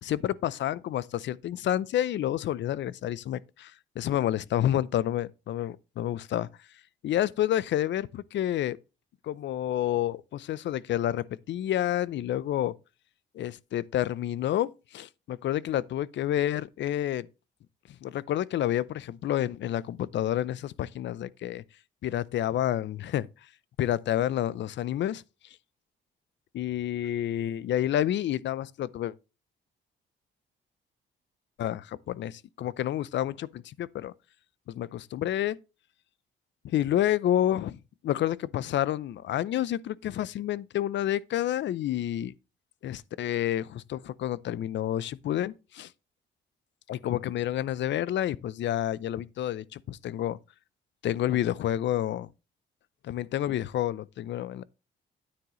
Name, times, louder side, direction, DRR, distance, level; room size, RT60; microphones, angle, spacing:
voice 1, 0.0-6.5 7.0-8.8 9.2-12.7 13.3-17.3 18.0-21.6 22.0-23.3 23.8-25.2 26.5-29.1 31.6-34.1 34.7-35.6 36.6-37.8 38.0-42.3 42.8-45.9 46.9-50.4 51.0-52.3 53.0-54.6, left 12 dB, 65° left, 0.6 m, -29 dB
9.7 x 9.3 x 3.1 m
cardioid pair, 90°, 20 cm